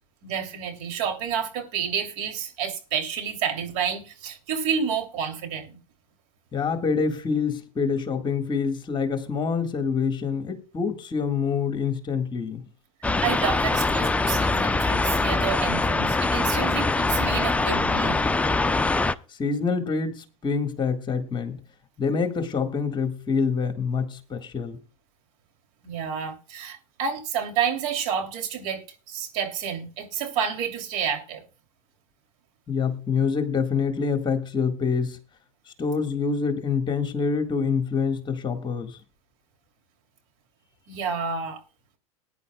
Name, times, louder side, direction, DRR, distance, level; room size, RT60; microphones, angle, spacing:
voice 1, 0.2-5.8 13.2-18.2 25.8-31.4 40.9-41.6, right 7 dB, 60° right, 3.1 m, -29 dB
voice 2, 6.5-12.6 19.3-21.6 22.0-24.8 32.7-35.2 35.8-39.0, left 5 dB, 25° left, 1.9 m, -26 dB
sound 1, 13.0-19.2, left 3 dB, 5° left, 0.5 m, -23 dB
20.5 x 9.9 x 2.3 m
hypercardioid pair, 95°, 18 cm